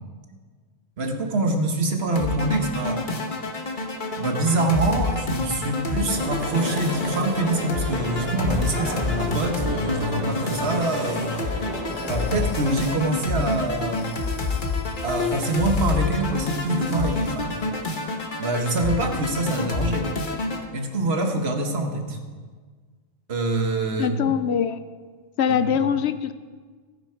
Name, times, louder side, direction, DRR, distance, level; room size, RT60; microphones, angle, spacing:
voice 1, 1.0-3.0 4.2-11.6 12.1-14.1 15.0-17.6 18.4-20.1 20.7-22.2 23.3-24.3 25.5-25.8, right 2 dB, 65° right, 4 dB, 1.5 m, -25 dB
sound 1, 2.1-20.6, left 3 dB, 50° left, 1.3 m, -28 dB
sound 2, 4.5-5.4 5.6-7.5 8.7-9.8 10.3-11.5 11.8-16.0 16.5-17.7, left 3 dB, 30° left, 1.2 m, -46 dB
sound 3, 6.1-12.9, equal, 40° right, 3.3 m, -34 dB
voice 2, 24.0-24.8 25.4-26.3, left 8 dB, 75° left, 12 dB, 0.9 m, -22 dB
15.5 x 9.9 x 4.5 m, 1.5 s
omnidirectional pair, 1.1 m